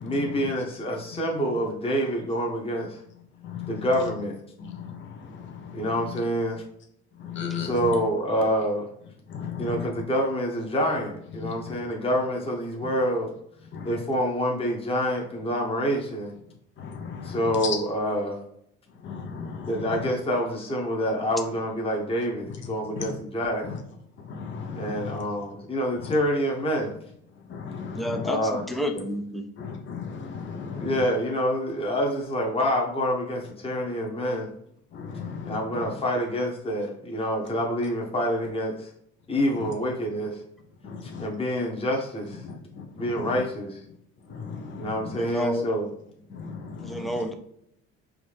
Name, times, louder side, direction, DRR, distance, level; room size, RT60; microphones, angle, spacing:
voice 1, 0.0-3.0 3.7-4.4 5.7-6.6 7.6-8.9 9.6-13.3 13.8-16.3 17.2-18.4 19.7-23.7 24.8-26.9 28.2-28.6 30.7-34.5 35.4-38.9 39.3-40.4 41.0-42.4 42.9-43.8 44.8-45.9, equal, 20° left, -1 dB, 1.2 m, -27 dB
voice 2, 7.3-7.7 9.3-9.5 19.1-19.4 24.5-24.6 27.7-27.9 29.6-30.2 30.6-30.8 35.2-35.3, left 7 dB, 40° left, 3 dB, 0.9 m, -34 dB
voice 3, 27.9-28.4 28.7-29.4 45.2-45.7 46.8-47.3, equal, ahead, 5 dB, 0.5 m, -29 dB
4.8 x 2.7 x 3.5 m, 0.72 s
cardioid pair, 105°, 29 cm